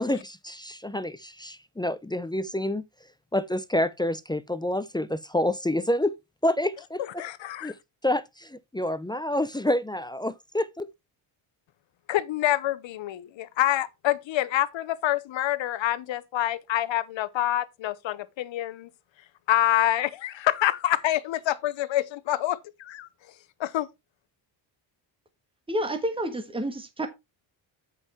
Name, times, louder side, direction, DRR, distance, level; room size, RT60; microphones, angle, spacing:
voice 1, 0.0-2.8 3.3-6.1 6.4-7.0 7.6-7.8 8.0-10.9, left 1 dB, 10° left, 0.4 m, -28 dB
voice 2, 7.0-7.7 12.1-18.9 19.5-23.1 23.6-23.9, left 13 dB, 70° left, 0.9 m, -26 dB
voice 3, 25.7-27.1, right 1 dB, 10° right, 1.5 m, -29 dB
8.1 x 5.5 x 4.5 m
cardioid pair, 125°, 48 cm